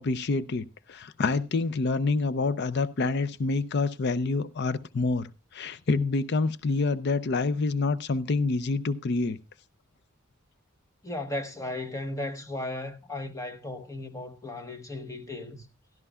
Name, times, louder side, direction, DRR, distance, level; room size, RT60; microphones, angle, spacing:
voice 1, 0.0-5.3 5.5-9.4, left 3 dB, 55° left, 0.5 m, -27 dB
voice 2, 11.0-15.7, left 2 dB, 15° left, 1.0 m, -36 dB
16.5 x 12.0 x 2.3 m
head